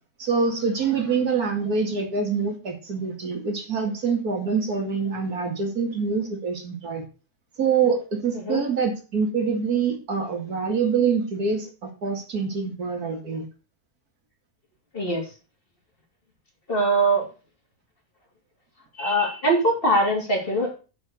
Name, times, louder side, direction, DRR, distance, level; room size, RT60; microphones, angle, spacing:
voice 1, 0.2-7.0 7.6-13.5, right 5 dB, 85° right, 3 dB, 2.7 m, -25 dB
voice 2, 16.7-17.2 19.0-20.7, right 1 dB, 35° left, 0 dB, 3.1 m, -22 dB
7.0 x 6.8 x 6.6 m, 0.34 s
omnidirectional pair, 1.6 m